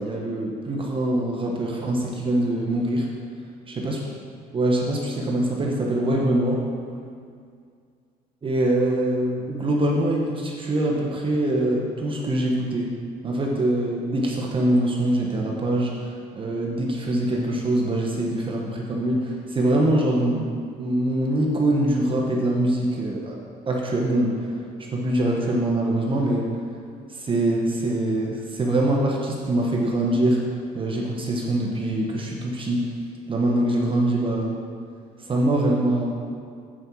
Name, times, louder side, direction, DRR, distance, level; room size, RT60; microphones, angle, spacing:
voice 1, 0.0-3.1 3.7-4.0 4.5-6.6 8.4-12.9 13.2-20.5 20.8-23.4 23.7-26.5 27.1-32.9 33.3-34.6 35.2-36.1, right 1 dB, 30° right, -1 dB, 1.2 m, -23 dB
8.9 x 5.4 x 6.3 m, 2.2 s
cardioid pair, 110°, 17 cm